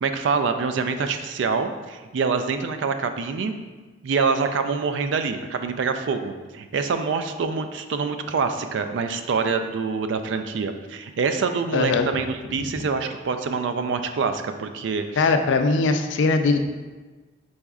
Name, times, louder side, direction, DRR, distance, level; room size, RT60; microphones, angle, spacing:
voice 1, 0.0-3.5 4.0-15.3, right 5 dB, 70° right, 8 dB, 0.3 m, -25 dB
voice 2, 11.7-12.1 15.2-16.7, left 3 dB, 75° left, 7 dB, 0.4 m, -20 dB
4.8 x 4.1 x 2.3 m, 1.3 s
head